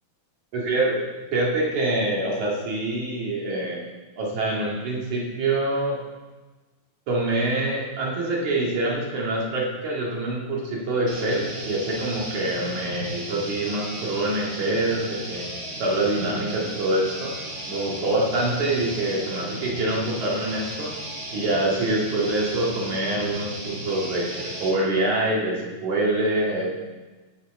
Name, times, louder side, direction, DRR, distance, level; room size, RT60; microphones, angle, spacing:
voice 1, 0.5-1.0 1.3-3.9 4.2-6.0 7.1-15.5 15.8-17.3 17.7-20.9 21.3-26.7, right 2 dB, 50° right, -4 dB, 3.2 m, -25 dB
sound 1, 11.1-24.8, right 1 dB, 30° right, 1.8 m, -35 dB
17.0 x 8.6 x 3.7 m, 1.2 s
omnidirectional pair, 4.6 m